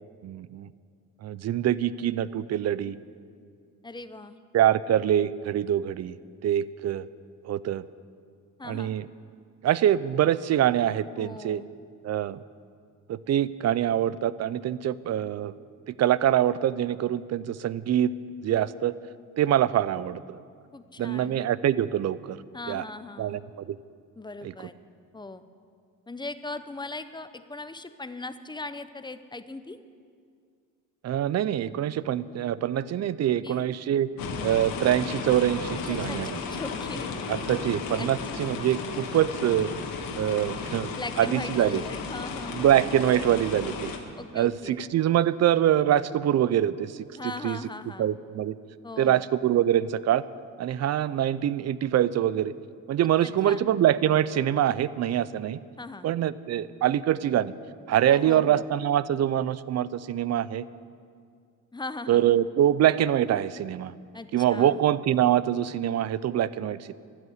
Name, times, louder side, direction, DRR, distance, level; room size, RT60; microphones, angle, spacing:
voice 1, 0.2-0.7 1.2-3.0 4.5-6.2 6.4-7.1 7.4-7.8 8.6-9.1 9.6-11.6 12.0-12.4 13.1-15.5 15.9-18.1 18.4-18.9 19.4-20.4 21.0-22.4 22.7-22.8 23.2-23.8 24.4-24.5 31.0-34.1 34.4-36.4 37.3-39.7 40.1-41.8 42.5-43.9 44.3-47.6 48.0-48.6 49.0-50.2 50.6-52.5 52.9-55.6 56.0-57.5 57.9-60.6 62.1-63.9 64.3-66.9, right 11 dB, 50° right, 18 dB, 0.5 m, -24 dB
voice 2, 3.8-4.4 8.6-8.9 11.2-11.7 20.7-21.4 22.5-23.4 24.2-24.7 25.1-25.4 26.1-29.8 33.4-33.7 35.9-37.1 38.0-38.4 40.9-42.7 44.2-44.8 47.2-48.1 48.8-49.2 53.2-53.6 55.8-56.1 58.1-58.6 61.7-62.3 64.1-64.8, left 2 dB, 15° left, 11 dB, 0.6 m, -39 dB
sound 1, 34.2-44.0, left 5 dB, 70° left, 1.7 m, -34 dB
12.5 x 8.0 x 9.4 m, 2.2 s
cardioid pair, 90°, 35 cm